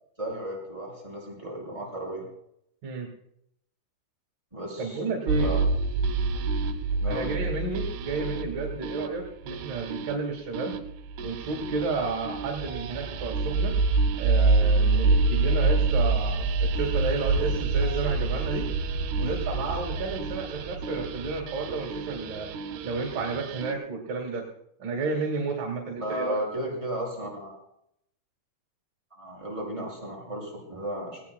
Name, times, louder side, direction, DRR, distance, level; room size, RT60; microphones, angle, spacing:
voice 1, 0.2-2.2 4.5-5.0 5.4-5.6 6.9-7.3 26.0-27.6 29.1-31.2, right 1 dB, 5° right, -3 dB, 6.0 m, -34 dB
voice 2, 4.8-5.5 7.1-10.8 11.2-13.7 14.2-18.7 19.2-22.5 22.8-24.4 24.8-26.4, right 4 dB, 60° right, 0 dB, 3.5 m, -31 dB
sound 1, 5.3-23.7, right 3 dB, 85° right, 3.0 m, -27 dB
19.0 x 18.5 x 2.3 m, 0.75 s
omnidirectional pair, 4.6 m